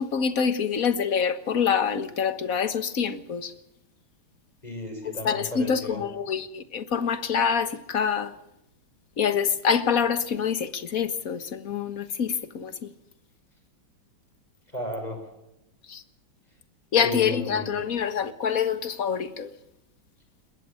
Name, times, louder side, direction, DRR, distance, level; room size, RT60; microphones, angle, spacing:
voice 1, 0.0-3.5 5.2-8.3 9.2-12.9 15.9-16.0 16.9-19.5, left 7 dB, 45° left, 1.7 m, -26 dB
voice 2, 4.6-6.0 14.7-15.3 16.9-17.7, left 1 dB, 20° left, 6.5 m, -34 dB
21.0 x 15.5 x 9.0 m
omnidirectional pair, 2.3 m